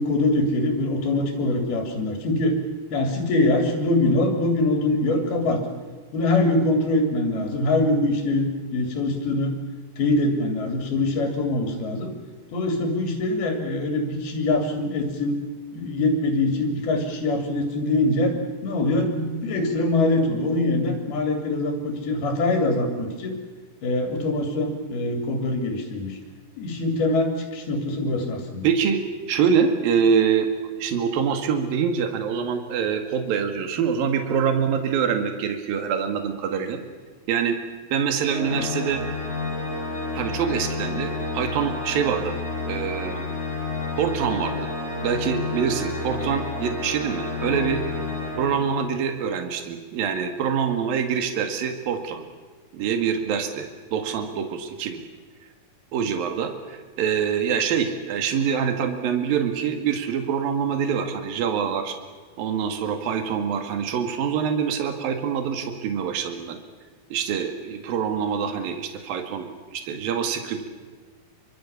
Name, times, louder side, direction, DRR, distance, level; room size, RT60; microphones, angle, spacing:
voice 1, 0.0-2.6 2.9-5.6 6.1-9.5 10.0-12.1 12.5-15.4 15.7-18.3 18.6-23.4 23.8-26.2 26.6-28.7, left 2 dB, 90° left, 3 dB, 4.9 m, -23 dB
voice 2, 28.6-29.0 29.3-30.5 30.8-36.8 37.3-37.6 37.9-39.0 40.1-42.4 42.6-43.2 44.0-44.7 45.0-47.8 48.4-52.3 52.7-55.0 55.9-62.0 62.4-66.6 67.1-70.7, right 7 dB, 70° right, 6 dB, 3.7 m, -25 dB
Organ, 38.3-49.1, left 3 dB, 15° left, 4.8 m, -30 dB
29.0 x 24.5 x 7.2 m, 1.4 s
omnidirectional pair, 4.3 m